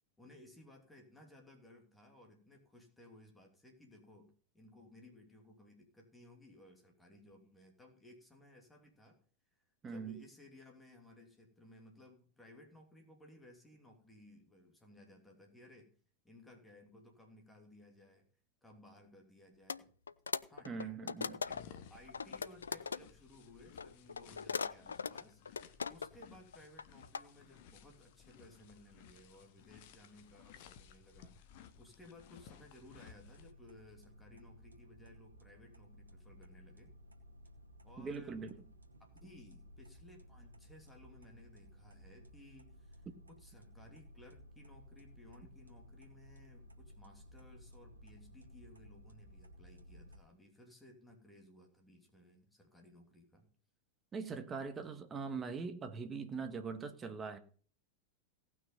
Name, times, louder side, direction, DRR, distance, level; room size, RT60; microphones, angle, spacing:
voice 1, 0.2-9.2 9.5-15.9 16.2-18.2 18.6-19.9 20.5-21.0 21.4-21.6 21.9-25.4 25.9-36.9 37.8-38.4 39.0-53.5, left 1 dB, 10° left, 3.0 m, -59 dB
voice 2, 9.8-10.2 20.6-21.4 38.0-38.5 54.1-57.4, right 5 dB, 20° right, 1.6 m, -42 dB
sound 1, 19.7-19.8 20.1-21.8 22.1-23.0 23.8-26.3 26.5-27.2, left 5 dB, 75° left, 0.5 m, -39 dB
sound 2, 21.4-33.5, left 8 dB, 50° left, 1.3 m, -58 dB
sound 3, 32.8-50.2, equal, 80° right, 1.9 m, -57 dB
18.0 x 6.2 x 5.6 m
figure-of-eight pair, 90°, 0 cm